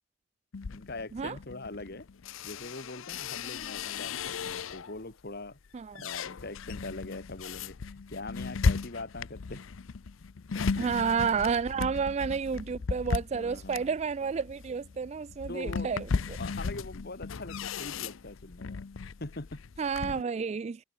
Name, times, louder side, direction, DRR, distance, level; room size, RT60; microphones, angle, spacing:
sound 1, 0.5-5.0 5.5-20.2, left 5 dB, 75° left, 0.6 m, -36 dB
voice 1, 0.7-2.1 2.4-5.6 5.9-9.6 10.5-11.0 11.7-11.9 13.3-14.0 15.5-15.9 16.4-18.9 19.2-19.6 20.0-20.1, left 2 dB, 50° left, 2.0 m, -42 dB
voice 2, 10.8-16.4 19.8-20.8, right 6 dB, 35° right, 0.3 m, -31 dB
head